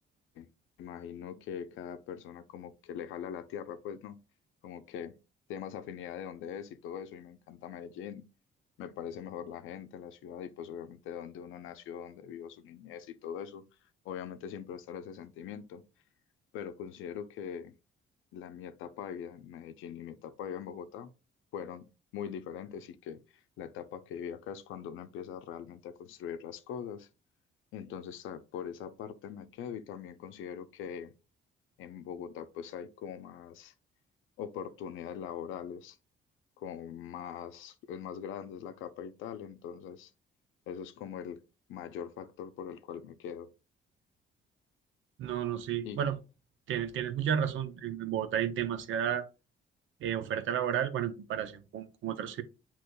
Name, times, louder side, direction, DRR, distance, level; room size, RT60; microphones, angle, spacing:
voice 1, 0.8-4.2 4.6-5.1 5.5-8.2 8.8-13.6 14.0-15.8 16.5-17.7 18.3-21.1 21.5-21.9 22.1-23.2 23.6-27.1 27.7-31.1 31.8-33.7 34.4-36.0 36.6-40.1 40.7-41.4 41.7-43.5 45.8-46.0, left 8 dB, 90° left, 0.6 m, -42 dB
voice 2, 45.2-46.2 46.7-49.3 50.0-52.4, right 9 dB, 75° right, 0.7 m, -32 dB
7.8 x 3.0 x 2.2 m
cardioid pair, 90°, 20 cm